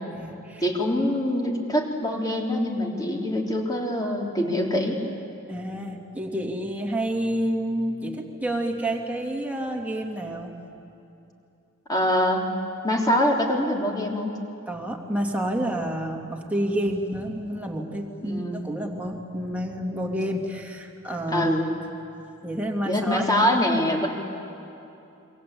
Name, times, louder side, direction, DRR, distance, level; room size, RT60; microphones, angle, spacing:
voice 1, 0.1-0.7 5.5-10.5 14.7-21.6 22.4-23.4, right 1 dB, 5° right, 0 dB, 2.7 m, -29 dB
voice 2, 0.6-5.0 11.9-12.5 12.8-14.4 18.2-18.6 21.3-21.7 22.9-24.1, left 1 dB, 20° left, -1 dB, 3.6 m, -24 dB
27.5 x 24.5 x 8.6 m, 2.8 s
head